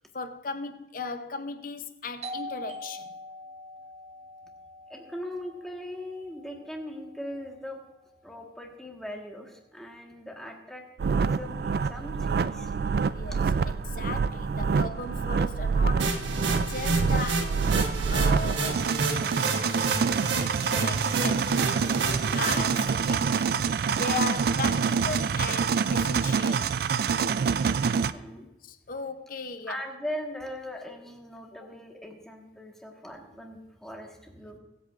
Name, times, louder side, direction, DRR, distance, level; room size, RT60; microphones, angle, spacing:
voice 1, 0.1-3.1 13.0-17.6 18.1-19.8 20.7-21.5 22.3-23.5 23.9-26.8 28.6-29.8, left 4 dB, 45° left, 0.7 m, -37 dB
Doorbell, 2.2-7.6, left 1 dB, 35° right, 0.9 m, -43 dB
voice 2, 4.9-7.8 8.2-12.7 13.3-13.4 20.7-22.6 27.9-28.5 29.7-34.6, left 1 dB, ahead, 1.4 m, -40 dB
sound 1, 11.0-28.1, right 5 dB, 55° right, 0.3 m, -26 dB
sound 2, 16.0-22.8, right 3 dB, 90° right, 1.4 m, -30 dB
22.5 x 8.3 x 2.5 m
head